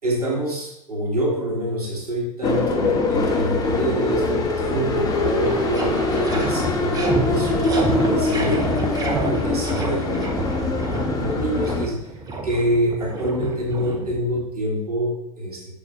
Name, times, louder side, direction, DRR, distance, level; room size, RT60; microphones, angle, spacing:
voice 1, 0.0-7.7 8.0-12.0 12.4-15.6, right 1 dB, 75° right, -4 dB, 2.8 m, -26 dB
sound 1, 2.4-11.8, left 3 dB, 20° left, 1.2 m, -23 dB
sound 2, 4.7-4.8 5.1-14.5, right 2 dB, 20° right, 1.2 m, -29 dB
6.3 x 6.0 x 4.8 m, 0.82 s
figure-of-eight pair, 90°, 19 cm